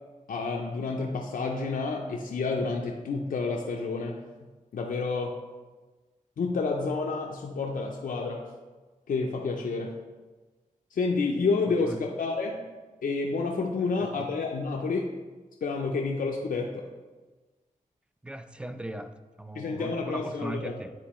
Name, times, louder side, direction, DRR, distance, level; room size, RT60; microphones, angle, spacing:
voice 1, 0.3-4.2 4.7-5.4 6.4-8.4 9.1-10.0 10.9-12.6 13.0-15.1 15.6-16.9 19.5-20.7, left 4 dB, 85° left, 0 dB, 0.5 m, -29 dB
voice 2, 11.7-12.0 13.8-14.3 18.2-20.9, right 1 dB, 5° right, 10 dB, 0.4 m, -39 dB
9.4 x 3.8 x 3.0 m, 1.3 s
wide cardioid pair, 70°, 14 cm